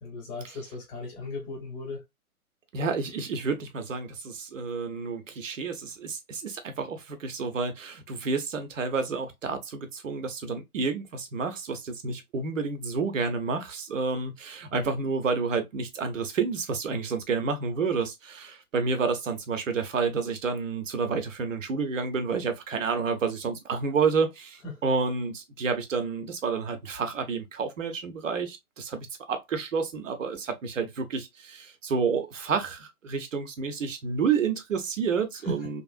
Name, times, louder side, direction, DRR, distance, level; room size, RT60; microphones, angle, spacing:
voice 1, 0.0-2.0 14.7-14.9 24.6-24.8 35.4-35.6, left 1 dB, 15° left, 0.7 m, -36 dB
voice 2, 2.7-35.8, right 5 dB, 60° right, 0.9 m, -30 dB
3.3 x 2.4 x 2.4 m
figure-of-eight pair, 120°, 44 cm